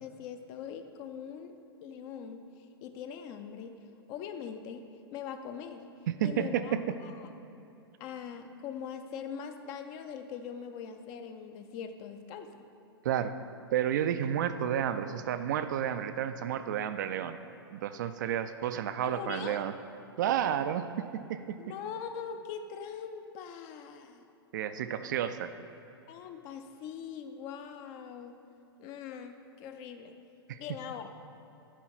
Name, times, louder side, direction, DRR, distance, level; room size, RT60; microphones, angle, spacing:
voice 1, 0.0-2.4 2.8-3.8 4.1-4.8 5.1-5.8 6.2-7.3 8.0-12.6 19.0-19.6 21.6-24.3 26.1-28.4 28.8-30.2 30.6-31.1, left 7 dB, 30° left, 8 dB, 0.5 m, -42 dB
voice 2, 6.1-6.8 13.0-13.3 13.7-17.4 17.7-19.7 20.2-21.6 24.5-25.5 30.5-30.6, right 9 dB, 45° right, 10 dB, 0.3 m, -31 dB
9.1 x 3.8 x 5.9 m, 2.9 s
figure-of-eight pair, 105°, 13 cm